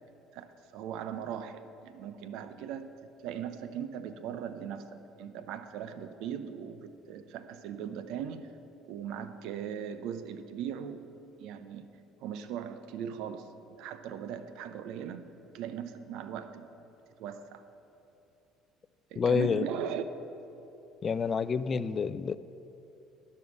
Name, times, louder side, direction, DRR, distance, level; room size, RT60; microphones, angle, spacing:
voice 1, 0.3-8.5 8.9-11.0 11.4-11.9 12.2-13.5 13.8-15.3 15.5-16.7 17.2-17.6 19.1-20.0 21.7-21.9, right 8 dB, 75° right, 11 dB, 0.5 m, -39 dB
voice 2, 19.2-19.7 21.0-22.4, left 6 dB, 40° left, 15 dB, 0.3 m, -28 dB
11.0 x 5.4 x 7.0 m, 2.9 s
supercardioid pair, 80°, 0 cm